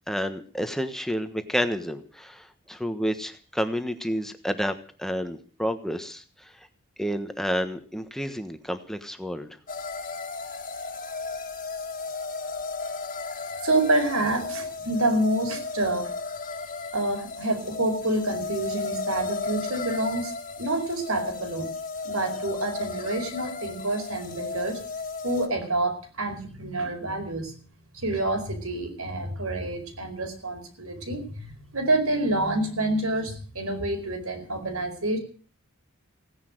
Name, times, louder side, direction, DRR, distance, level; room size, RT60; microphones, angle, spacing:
voice 1, 0.1-4.7 5.0-6.5 7.0-9.6, equal, ahead, 8 dB, 1.3 m, -30 dB
sound 1, 9.7-25.5, left 4 dB, 40° left, 2.1 m, -34 dB
voice 2, 13.6-16.1 16.9-20.3 20.6-21.7 22.0-24.8 25.2-27.6 27.9-35.2, right 2 dB, 80° right, 5 dB, 4.8 m, -27 dB
17.0 x 10.5 x 7.9 m, 0.42 s
head